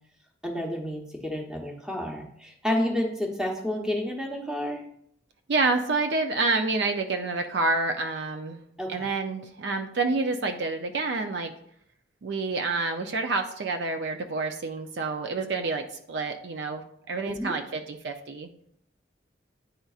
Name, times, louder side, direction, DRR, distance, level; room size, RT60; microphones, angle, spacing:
voice 1, 0.4-4.9 8.8-9.0 17.3-17.5, left 1 dB, 5° right, -1 dB, 0.9 m, -30 dB
voice 2, 5.5-8.6 8.9-11.5 12.2-18.5, right 3 dB, 60° right, 5 dB, 0.4 m, -28 dB
10.0 x 3.9 x 2.4 m, 0.69 s
head